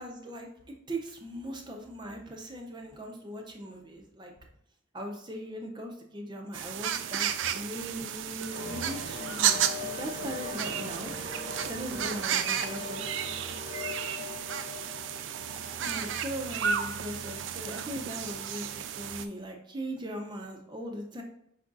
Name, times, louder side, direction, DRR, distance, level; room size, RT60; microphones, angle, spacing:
voice 1, 0.0-4.3 4.9-11.1 11.4-13.0 15.8-21.2, right 1 dB, 25° right, 2 dB, 0.6 m, -39 dB
sound 1, 6.5-19.2, right 8 dB, 70° right, 0.3 m, -33 dB
sound 2, 8.5-16.5, left 4 dB, 50° left, 0.8 m, -42 dB
Acoustic guitar, 10.5-15.7, left 2 dB, 15° left, 0.8 m, -55 dB
5.6 x 3.9 x 2.4 m, 0.71 s
head